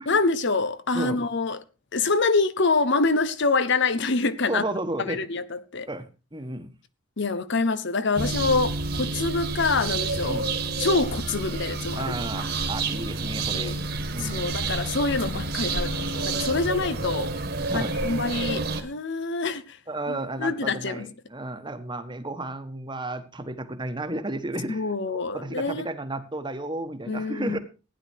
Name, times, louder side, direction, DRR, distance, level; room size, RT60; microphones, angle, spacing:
voice 1, 0.1-1.6 1.9-4.6 5.0-5.9 7.2-10.4 10.8-12.1 13.5-13.8 14.2-17.3 17.7-19.8 20.1-21.1 24.7-25.9 27.1-27.6, left 3 dB, 60° left, 1.0 m, -26 dB
voice 2, 0.9-1.2 4.5-5.2 5.9-6.7 10.3-10.5 12.0-13.7 14.0-14.6 17.7-18.0 19.9-27.6, right 2 dB, 20° right, 1.4 m, -33 dB
sound 1, 8.2-18.8, right 3 dB, 55° right, 2.0 m, -29 dB
16.0 x 10.0 x 4.6 m
head